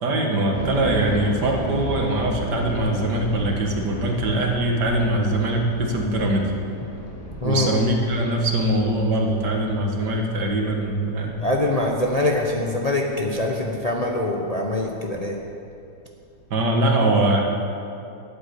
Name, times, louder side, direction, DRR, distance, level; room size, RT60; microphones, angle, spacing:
voice 1, 0.0-6.5 7.4-11.4 16.5-17.4, right 1 dB, 75° right, 1 dB, 2.2 m, -22 dB
sound 1, 0.5-15.4 15.7-15.8 16.4-16.7, equal, 70° left, 3.0 m, -35 dB
voice 2, 11.4-15.3, left 1 dB, 30° left, 0 dB, 0.8 m, -23 dB
12.0 x 8.0 x 8.5 m, 2.6 s
omnidirectional pair, 1.8 m